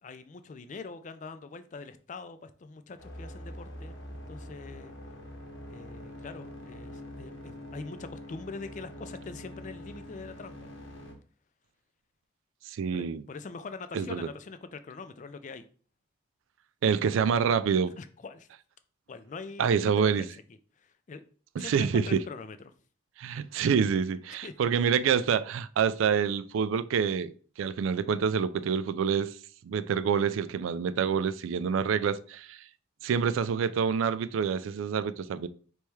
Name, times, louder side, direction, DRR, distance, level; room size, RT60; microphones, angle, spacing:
voice 1, 0.0-4.9 5.7-10.7 12.9-15.6 18.0-18.5 19.1-20.3 20.8-21.2 21.6-22.7 24.4-24.8, left 4 dB, 40° left, 0.3 m, -43 dB
sound 1, 3.0-11.1, left 1 dB, 70° left, 1.0 m, -44 dB
voice 2, 12.7-13.2 13.9-14.3 16.8-17.9 19.6-20.2 21.6-22.2 23.2-27.3 27.6-29.3 29.6-32.6 33.0-35.5, right 6 dB, 85° right, 0.3 m, -27 dB
3.3 x 3.1 x 4.5 m
head